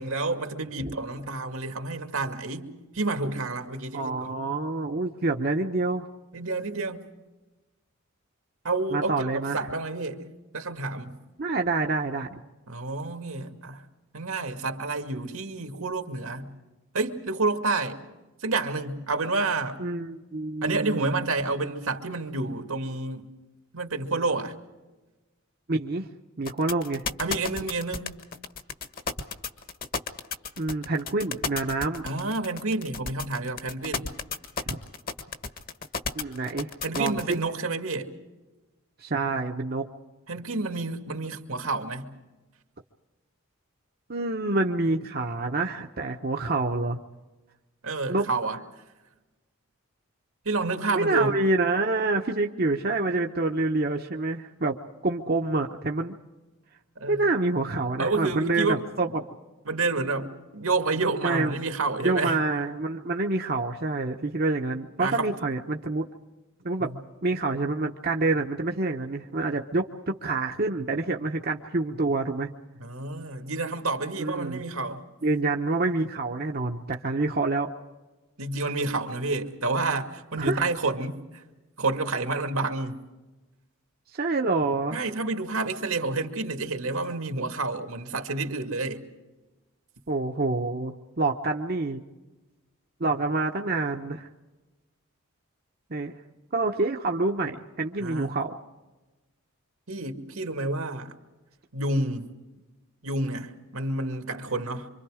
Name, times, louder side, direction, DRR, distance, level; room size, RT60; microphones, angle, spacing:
voice 1, 0.0-2.7 2.9-4.3 6.3-7.0 8.6-10.3 10.5-11.1 12.7-13.8 14.1-16.5 16.9-18.0 18.4-19.8 20.6-23.3 23.7-24.5 27.2-28.2 32.0-34.1 36.8-38.1 40.3-42.1 47.8-48.6 50.4-51.3 57.0-57.2 58.0-58.9 59.7-62.4 65.0-65.3 66.8-67.0 72.8-75.0 78.4-81.4 81.8-83.0 84.9-89.0 98.0-98.4 99.9-101.1 101.7-102.3 103.0-104.9, right 3 dB, 85° right, 2.2 m, -29 dB
voice 2, 3.9-6.1 8.9-9.6 11.4-12.3 19.8-21.2 25.7-26.1 26.4-27.0 30.6-32.0 34.6-34.8 36.1-37.4 39.0-39.8 44.1-47.0 48.1-48.3 50.9-54.8 55.0-56.1 57.1-59.2 61.2-61.5 62.0-66.0 66.6-66.9 67.2-72.5 74.2-74.6 75.2-77.7 80.4-80.6 84.1-85.0 90.1-92.0 93.0-94.3 95.9-96.1 96.5-98.5, right 3 dB, 45° right, 0.9 m, -27 dB
sound 1, 26.4-37.3, left 5 dB, 40° left, 1.4 m, -32 dB
26.5 x 25.0 x 5.0 m
head